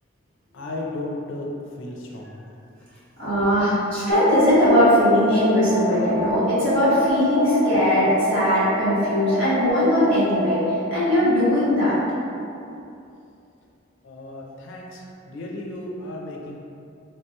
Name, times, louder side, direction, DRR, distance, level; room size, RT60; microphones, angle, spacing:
voice 1, 0.5-2.5 14.0-16.6, left 1 dB, 70° left, -1 dB, 0.4 m, -34 dB
voice 2, 3.2-12.0, left 1 dB, 70° right, -12 dB, 1.4 m, -20 dB
sound 1, 4.1-10.6, equal, 20° right, 0.5 m, -26 dB
3.2 x 2.2 x 2.8 m, 2.6 s
head